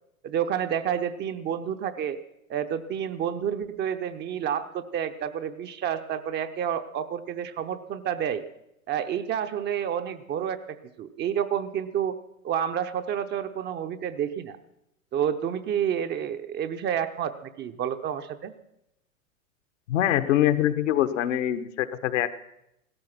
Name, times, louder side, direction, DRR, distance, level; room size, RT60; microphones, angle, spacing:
voice 1, 0.2-2.2 2.5-8.4 8.9-12.2 12.4-14.6 15.1-18.5, right 9 dB, 25° right, 9 dB, 0.8 m, -29 dB
voice 2, 19.9-22.3, left 12 dB, 60° left, 10 dB, 1.2 m, -24 dB
16.5 x 13.0 x 6.0 m, 0.82 s
figure-of-eight pair, 100°, 41 cm